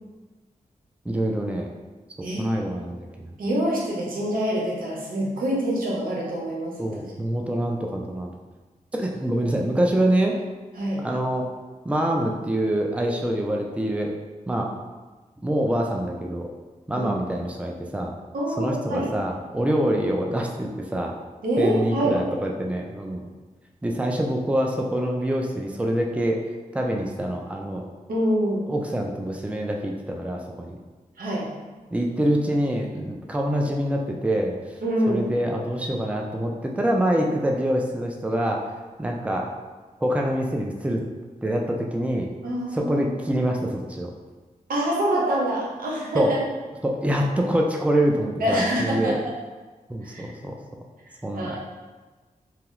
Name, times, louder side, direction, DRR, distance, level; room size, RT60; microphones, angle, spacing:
voice 1, 1.1-1.7 2.4-3.3 6.8-8.3 8.9-10.3 11.0-11.5 11.8-14.1 14.5-14.7 15.4-16.5 16.9-18.1 18.6-21.1 21.6-23.3 23.8-26.4 26.7-27.8 28.7-30.8 31.9-34.6 35.1-38.6 39.0-39.5 40.0-41.0 41.4-42.3 42.7-44.1 46.1-46.4 46.8-49.2 49.9-50.5 51.2-51.6, right 1 dB, 10° right, 0 dB, 0.4 m, -25 dB
voice 2, 2.2-2.6 3.4-6.7 10.8-11.1 16.9-17.1 18.3-19.1 21.4-22.2 28.1-28.7 31.2-31.5 34.8-35.2 42.4-43.0 44.7-46.4 48.4-49.1 50.0-50.2 51.3-51.6, equal, 80° right, -4 dB, 0.8 m, -25 dB
2.8 x 2.3 x 3.1 m, 1.3 s
cardioid pair, 45°, 14 cm